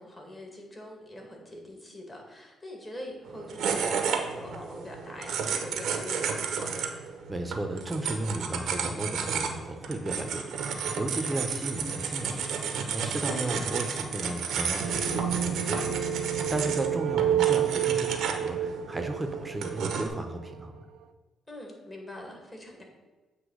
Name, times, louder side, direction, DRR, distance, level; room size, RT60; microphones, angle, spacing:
voice 1, 0.0-6.9 13.3-13.7 21.5-22.8, left 1 dB, 20° left, 1 dB, 2.0 m, -43 dB
sound 1, 3.2-20.1, right 6 dB, 75° right, 0.9 m, -32 dB
voice 2, 7.3-12.5 12.9-16.2 16.5-20.8, right 1 dB, 15° right, 5 dB, 0.9 m, -34 dB
sound 2, 14.8-20.6, right 10 dB, 90° right, 0.6 m, -29 dB
8.1 x 3.0 x 6.3 m, 1.2 s
cardioid pair, 90°, 0 cm